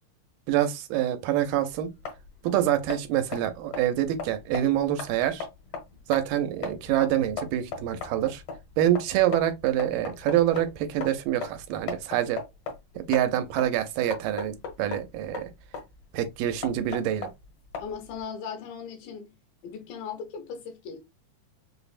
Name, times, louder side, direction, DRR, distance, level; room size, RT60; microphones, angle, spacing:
voice 1, 0.5-1.9 2.4-5.5 6.1-8.4 8.8-12.4 13.0-15.5 16.1-17.3, right 12 dB, 90° right, 2.2 m, -26 dB
sound 1, 1.4-18.2, left 5 dB, 65° left, 1.6 m, -39 dB
voice 2, 17.8-19.3 19.6-21.0, left 6 dB, 85° left, 2.5 m, -38 dB
5.4 x 2.0 x 2.4 m
omnidirectional pair, 3.7 m